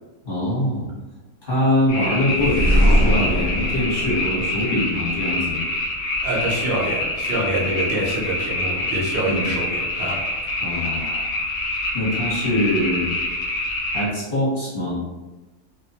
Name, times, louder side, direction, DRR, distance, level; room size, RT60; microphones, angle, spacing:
voice 1, 0.2-0.9 1.4-5.6 9.3-9.5 10.6-11.3 11.9-13.1 13.9-15.0, left 1 dB, 40° left, -8 dB, 1.0 m, -23 dB
sound 1, 1.9-14.1, left 2 dB, 75° left, 1.0 m, -26 dB
sound 2, 2.3-5.3, equal, 10° left, 0.6 m, -21 dB
voice 2, 6.2-10.2, right 1 dB, 65° right, -3 dB, 0.5 m, -26 dB
2.4 x 2.2 x 2.7 m, 1.1 s
omnidirectional pair, 1.6 m